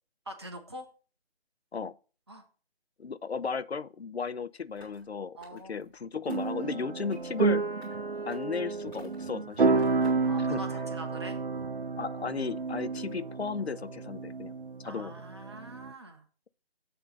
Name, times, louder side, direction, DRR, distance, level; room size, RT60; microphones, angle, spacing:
voice 1, 0.3-0.9 2.3-2.5 5.4-5.9 10.2-11.4 14.8-16.3, right 1 dB, 25° right, 0.9 m, -44 dB
voice 2, 3.0-7.6 8.3-9.9 10.5-10.6 12.0-14.5 14.8-15.1, left 5 dB, 85° left, 0.5 m, -35 dB
sound 1, 4.7-5.1 5.4-5.9 6.3-6.6 7.1-7.4 7.8-7.9 8.3-8.6 8.9-9.4 9.8-10.3, left 1 dB, 20° left, 2.8 m, -55 dB
sound 2, 6.3-15.9, right 4 dB, 60° right, 0.6 m, -31 dB
7.7 x 3.9 x 6.6 m
figure-of-eight pair, 160°, 31 cm